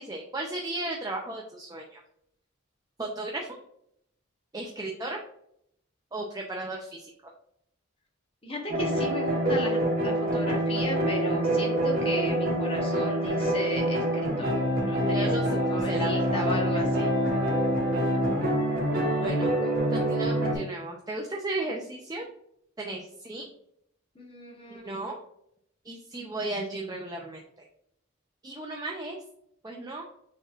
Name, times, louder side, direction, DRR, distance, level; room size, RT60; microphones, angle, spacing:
voice 1, 0.0-2.0 3.0-3.6 4.5-5.2 6.1-7.1 15.1-16.4 19.2-22.3 22.8-23.5 24.8-25.2 25.8-27.4 28.4-29.2 29.6-30.0, right 2 dB, 20° right, 0 dB, 0.5 m, -35 dB
voice 2, 8.4-17.1 24.1-24.8, equal, 25° left, 0 dB, 1.1 m, -35 dB
sound 1, 8.7-20.6, right 1 dB, 45° right, 1.3 m, -26 dB
6.5 x 3.1 x 2.4 m, 0.72 s
head